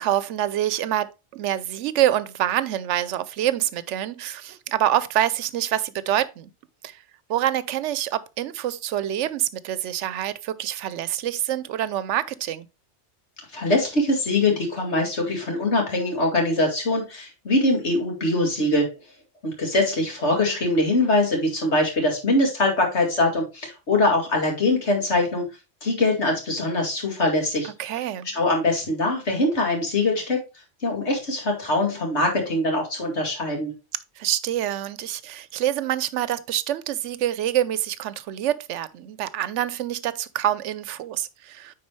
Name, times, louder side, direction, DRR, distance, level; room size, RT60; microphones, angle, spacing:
voice 1, 0.0-6.5 6.8-7.0 7.3-12.7 27.6-28.3 34.2-41.7, right 11 dB, 85° right, 0.9 m, -26 dB
voice 2, 13.5-18.9 19.4-25.5 25.8-27.7 28.3-30.4 30.8-33.7, left 2 dB, 70° left, 2.5 m, -22 dB
9.5 x 4.2 x 3.2 m
omnidirectional pair, 1.2 m